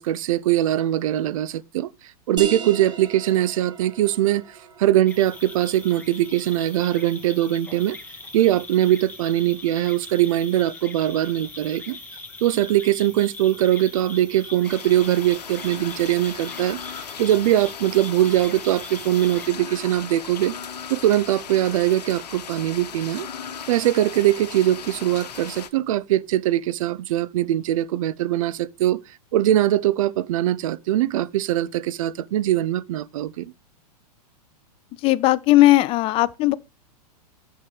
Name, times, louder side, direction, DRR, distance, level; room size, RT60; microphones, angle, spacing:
voice 1, 0.0-1.9 2.3-8.0 8.3-12.0 12.4-20.5 20.9-23.3 23.7-29.0 29.3-33.5, right 13 dB, 55° right, 0.6 m, -22 dB
sound 1, 2.4-7.7, right 4 dB, 20° right, 1.3 m, -38 dB
sound 2, 5.1-19.5, left 2 dB, 10° left, 2.1 m, -41 dB
sound 3, 14.6-25.7, left 7 dB, 75° left, 1.1 m, -37 dB
voice 2, 35.0-36.5, left 16 dB, 25° left, 0.4 m, -17 dB
11.0 x 6.7 x 3.4 m
hypercardioid pair, 105°, 21 cm